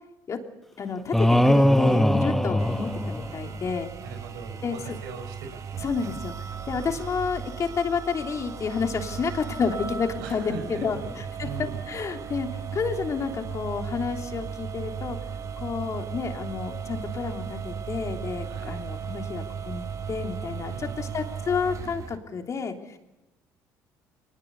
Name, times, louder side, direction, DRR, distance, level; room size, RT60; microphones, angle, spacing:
voice 1, 0.8-3.9 4.6-4.8 5.8-6.3 6.7-15.2 15.6-23.0, left 5 dB, 45° left, 4 dB, 3.1 m, -30 dB
sound 1, 1.1-3.6, equal, 5° left, 1.2 m, -21 dB
sound 2, 2.6-22.2, right 7 dB, 45° right, 1.6 m, -36 dB
voice 2, 4.0-6.2 6.7-7.1 10.2-11.8 18.4-18.9 20.7-21.2, right 5 dB, 80° right, 7 dB, 4.5 m, -41 dB
22.5 x 20.0 x 8.3 m, 0.98 s
supercardioid pair, 75°, 8 cm